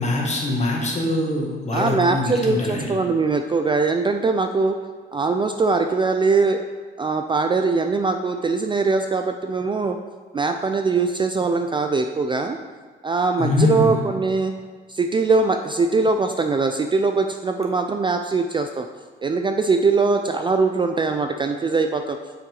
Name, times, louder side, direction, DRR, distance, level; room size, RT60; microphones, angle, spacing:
voice 1, 0.0-3.0 13.4-14.0, left 2 dB, 35° left, -1 dB, 1.7 m, -23 dB
voice 2, 1.7-4.8 5.1-6.6 7.0-10.0 10.3-12.6 13.0-14.5 14.9-18.9 19.2-22.2, right 4 dB, 25° right, 6 dB, 0.4 m, -21 dB
6.8 x 5.8 x 3.8 m, 1.4 s
cardioid pair, 90°, 20 cm